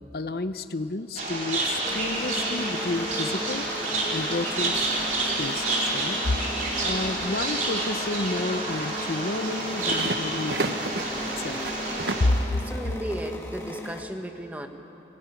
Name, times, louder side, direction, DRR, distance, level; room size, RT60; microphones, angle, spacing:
voice 1, 0.1-3.7 4.1-4.7 5.4-6.5 6.8-10.8 11.4-11.6 12.2-12.6, left 2 dB, 60° left, 11 dB, 0.7 m, -30 dB
sound 1, 1.2-12.3, right 2 dB, 45° right, 4.1 m, -29 dB
sound 2, 1.8-14.0, left 1 dB, 15° left, 1.8 m, -36 dB
sound 3, 5.4-5.8 9.5-12.4, right 2 dB, 75° right, 1.0 m, -33 dB
voice 2, 12.6-14.7, equal, 10° right, 5 dB, 1.2 m, -35 dB
23.0 x 17.5 x 9.8 m, 2.9 s
head